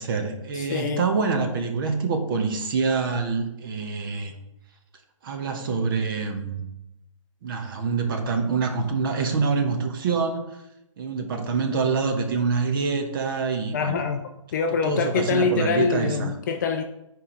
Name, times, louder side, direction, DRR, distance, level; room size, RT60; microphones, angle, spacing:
voice 1, 0.0-4.3 5.2-6.6 7.4-10.5 11.0-14.0 14.8-16.3, right 4 dB, 40° right, 1.1 m, -26 dB
voice 2, 0.5-1.1 13.7-16.8, left 5 dB, 35° left, 0.5 m, -25 dB
9.6 x 4.8 x 3.9 m
figure-of-eight pair, 140°, 17 cm